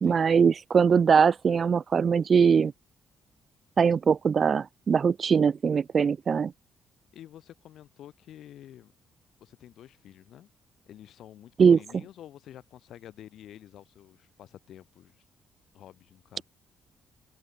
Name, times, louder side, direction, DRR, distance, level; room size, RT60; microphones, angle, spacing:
voice 1, 0.0-2.7 3.8-6.5 11.6-11.8, right 6 dB, 45° right, 0.4 m, -21 dB
voice 2, 7.1-8.9 9.4-10.5 10.9-15.2 15.7-16.4, left 11 dB, 75° left, 5.9 m, -49 dB
open air
cardioid pair, 90°, 0 cm